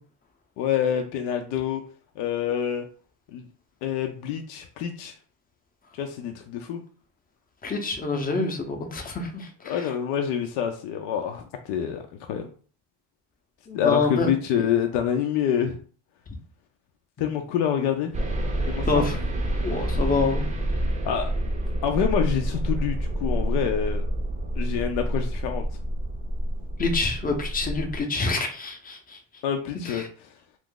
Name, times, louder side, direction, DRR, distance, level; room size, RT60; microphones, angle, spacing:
voice 1, 0.6-1.8 2.2-2.8 3.3-3.4 3.8-5.1 6.0-6.8 9.6-12.5 13.7-15.8 17.2-18.1 18.7-19.0 21.0-21.3 21.8-24.0 24.6-25.6 29.4-30.0, left 8 dB, 70° left, 4 dB, 0.6 m, -27 dB
voice 2, 7.6-9.9 13.7-14.3 18.9-19.2 19.6-20.5 26.8-29.2 29.9-30.1, left 3 dB, 20° left, 4 dB, 0.7 m, -27 dB
sound 1, 18.1-28.0, right 1 dB, 15° right, 0.6 m, -28 dB
2.6 x 2.5 x 3.7 m, 0.42 s
cardioid pair, 115°, 44 cm